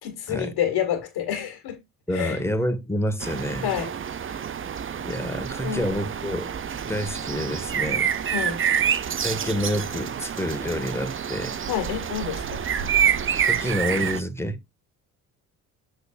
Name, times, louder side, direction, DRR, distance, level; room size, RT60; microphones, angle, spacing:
voice 1, 0.0-1.8 2.1-2.4 3.6-3.9 5.6-6.0 8.3-8.6 11.7-12.6, left 9 dB, 65° left, 2.1 m, -28 dB
voice 2, 2.1-3.7 5.0-6.5 6.9-8.1 9.2-11.5 13.4-14.6, equal, 5° left, 1.7 m, -28 dB
sound 1, 3.2-14.2, right 8 dB, 30° right, 0.6 m, -27 dB
8.1 x 6.8 x 2.5 m
hypercardioid pair, 50°, 43 cm